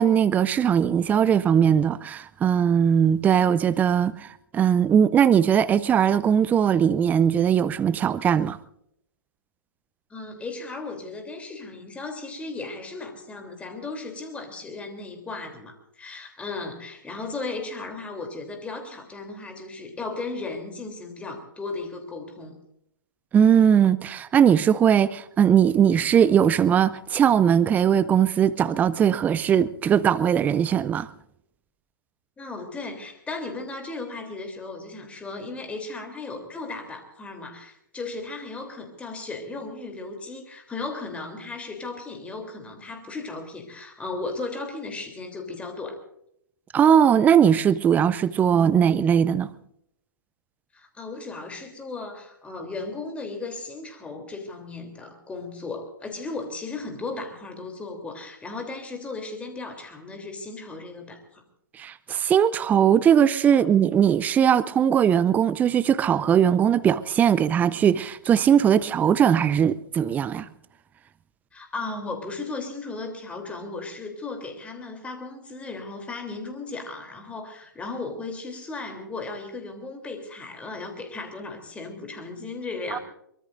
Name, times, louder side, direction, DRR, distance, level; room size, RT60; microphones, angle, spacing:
voice 1, 0.0-8.6 23.3-31.1 46.7-49.5 61.8-70.5 82.9-83.0, right 8 dB, 15° right, 0.5 m, -20 dB
voice 2, 10.1-22.6 32.4-46.0 50.7-61.4 63.6-63.7 71.5-83.0, left 3 dB, 10° left, 3.2 m, -36 dB
23.5 x 22.0 x 2.6 m
hypercardioid pair, 125°, 12 cm